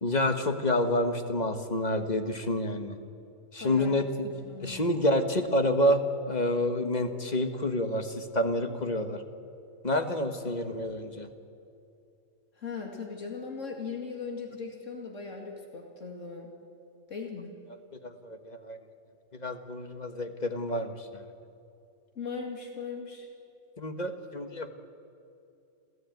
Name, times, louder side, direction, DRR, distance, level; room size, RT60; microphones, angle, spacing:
voice 1, 0.0-3.0 3.5-4.3 4.6-9.2 9.8-11.3 18.0-18.8 19.4-20.9 23.8-24.7, left 1 dB, 35° left, 7 dB, 1.5 m, -28 dB
voice 2, 3.6-4.8 12.6-16.5 17.1-17.5 22.2-23.3, left 5 dB, 85° left, 2 dB, 2.7 m, -39 dB
27.5 x 14.0 x 9.2 m, 2.5 s
omnidirectional pair, 1.3 m